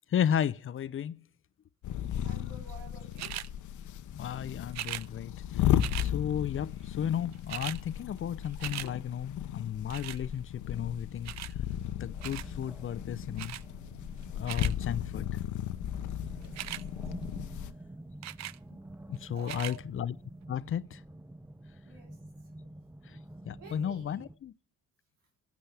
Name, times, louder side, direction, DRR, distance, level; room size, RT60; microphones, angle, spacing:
voice 1, 0.1-1.1 2.1-2.2 4.1-11.3 12.0-13.6 14.3-15.3 19.1-20.1 20.5-21.0 23.1-23.2 23.4-24.5, left 9 dB, 45° left, 0.6 m, -34 dB
sound 1, 1.8-17.7, left 11 dB, 75° left, 0.8 m, -35 dB
voice 2, 2.2-3.4 16.3-16.8 19.3-19.8 21.8-22.1 23.6-24.3, right 3 dB, 90° right, 3.5 m, -49 dB
sound 2, 3.2-3.5 4.7-5.1 5.8-6.1 7.0-7.1 7.3-7.8 8.2-8.9 9.9-10.2 11.3-11.5 12.2-12.5 13.4-13.6 14.2-14.7 16.4-16.8 18.2-18.6 19.4-19.8 20.4-20.5, right 14 dB, 65° right, 0.5 m, -39 dB
sound 3, 11.7-24.4, right 1 dB, 5° right, 0.6 m, -48 dB
22.0 x 7.5 x 3.4 m
cardioid pair, 90°, 30 cm